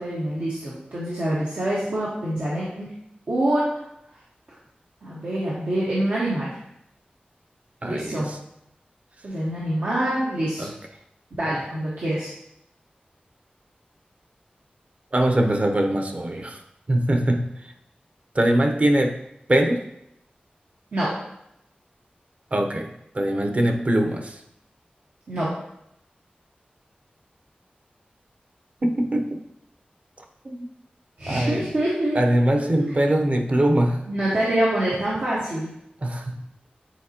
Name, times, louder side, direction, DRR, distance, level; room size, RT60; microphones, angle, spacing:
voice 1, 0.0-2.9 3.3-3.7 5.0-6.6 7.8-8.3 9.2-10.7 11.4-12.3 20.9-21.1 25.3-25.5 31.2-32.2 32.5-33.0 34.1-35.7, right 1 dB, 85° right, -8 dB, 1.4 m, -25 dB
voice 2, 7.8-8.4 10.6-10.7 11.5-11.6 15.1-16.6 16.9-17.5 18.3-19.2 19.5-19.8 22.5-24.4 28.8-29.4 30.4-30.7 31.3-31.7 32.1-34.0 36.0-36.4, right 1 dB, 45° right, 4 dB, 0.8 m, -22 dB
9.0 x 4.2 x 2.9 m, 0.79 s
wide cardioid pair, 60°, 3 cm